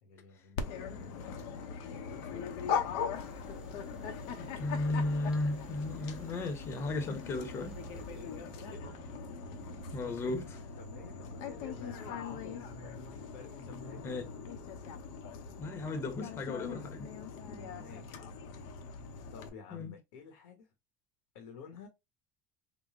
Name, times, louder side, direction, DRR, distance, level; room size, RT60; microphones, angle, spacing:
voice 1, 0.0-2.8 7.9-9.0 10.8-12.5 13.3-14.3 14.7-15.1 17.4-18.2 19.3-20.7 21.3-21.9, left 5 dB, 80° left, 1.2 m, -52 dB
Dog, 0.6-19.5, left 6 dB, 65° left, 0.8 m, -41 dB
sound 1, 3.1-8.2, right 2 dB, 10° right, 0.7 m, -55 dB
voice 2, 4.4-7.8 9.9-10.6 14.0-14.2 15.6-17.1 19.7-19.9, left 2 dB, 35° left, 1.0 m, -35 dB
sound 2, 7.4-14.0, right 3 dB, 60° right, 1.0 m, -52 dB
3.8 x 2.2 x 3.6 m
supercardioid pair, 120°, 8 cm